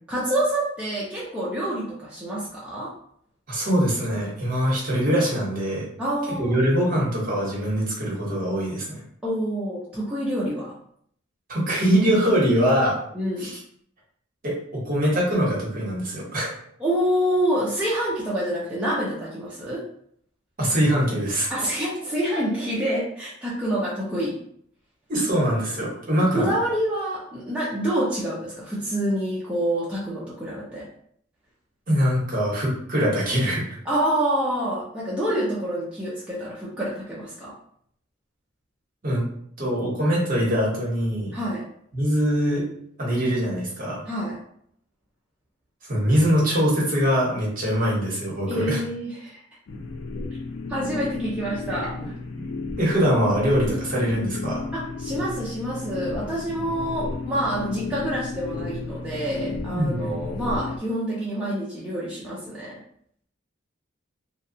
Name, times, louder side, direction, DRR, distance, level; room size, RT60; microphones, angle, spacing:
voice 1, 0.1-2.9 6.0-6.6 9.2-10.7 13.1-13.5 16.8-19.8 21.5-24.4 26.2-30.9 33.9-37.5 41.3-41.6 44.1-44.4 48.5-49.4 50.7-52.1 54.7-62.7, right 1 dB, 5° right, -8 dB, 0.4 m, -27 dB
voice 2, 3.5-5.9 6.3-9.0 11.5-13.0 13.4-13.6 14.4-16.5 20.6-21.5 25.1-26.5 31.9-33.6 39.0-39.3 39.6-41.3 41.9-42.7 43.0-44.0 45.9-48.8 52.0-52.1 52.4-52.5 52.8-54.6 59.7-60.2, equal, 45° right, -4 dB, 0.9 m, -23 dB
sound 1, 49.7-60.8, left 3 dB, 75° left, 0.4 m, -33 dB
2.7 x 2.2 x 2.6 m, 0.65 s
head